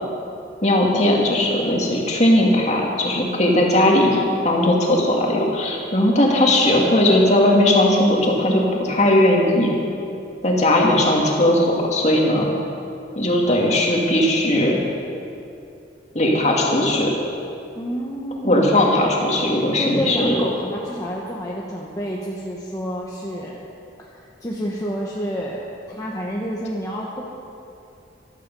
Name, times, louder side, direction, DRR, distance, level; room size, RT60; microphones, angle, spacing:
voice 1, 0.6-9.7 10.4-12.5 13.2-14.8 16.1-17.1 18.4-20.4, left 1 dB, 40° left, -2 dB, 2.3 m, -18 dB
voice 2, 17.7-18.8 19.8-23.6 24.0-27.2, equal, 20° left, -4 dB, 1.2 m, -29 dB
15.0 x 13.0 x 5.4 m, 2.6 s
head